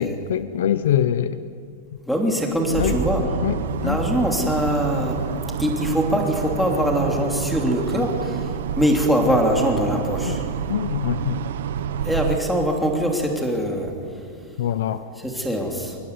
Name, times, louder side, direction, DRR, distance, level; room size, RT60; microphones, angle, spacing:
voice 1, 0.0-1.4 2.8-3.0 3.4-3.6 3.8-4.0 10.3-10.4 10.7-11.4 14.6-15.0, left 10 dB, 75° left, 13 dB, 1.0 m, -23 dB
voice 2, 2.0-3.3 3.8-5.2 5.6-10.4 12.0-13.9 15.2-16.0, equal, ahead, 1 dB, 3.2 m, -22 dB
sound 1, 2.8-12.4, right 8 dB, 80° right, 1.4 m, -29 dB
25.5 x 23.0 x 9.8 m, 2.2 s
supercardioid pair, 175°, 0 cm